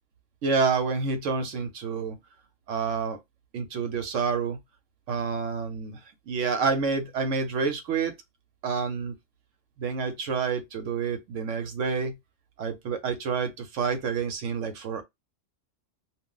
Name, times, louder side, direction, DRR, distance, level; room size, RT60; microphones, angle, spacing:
voice 1, 0.4-2.2 2.7-3.2 3.5-4.6 5.1-6.0 6.3-8.1 8.6-9.2 9.8-12.1 12.6-15.0, right 5 dB, 65° right, 1.0 m, -28 dB
2.5 x 2.0 x 3.7 m
omnidirectional pair, 1.4 m